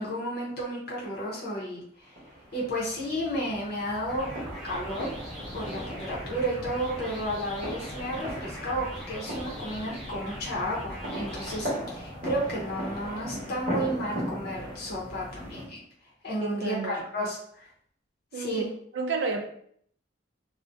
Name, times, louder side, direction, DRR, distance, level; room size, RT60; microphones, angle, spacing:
voice 1, 0.0-2.1 2.5-4.3 4.6-5.1 5.5-15.8 16.2-17.7 18.3-18.7, equal, 50° left, 0.6 m, -32 dB
sound 1, 2.2-15.6, equal, 40° right, 0.9 m, -38 dB
sound 2, 4.1-11.7, equal, 5° left, 0.9 m, -42 dB
voice 2, 16.4-17.0 18.3-18.6 18.9-19.5, right 4 dB, 65° right, 0.3 m, -31 dB
2.4 x 2.1 x 2.5 m
head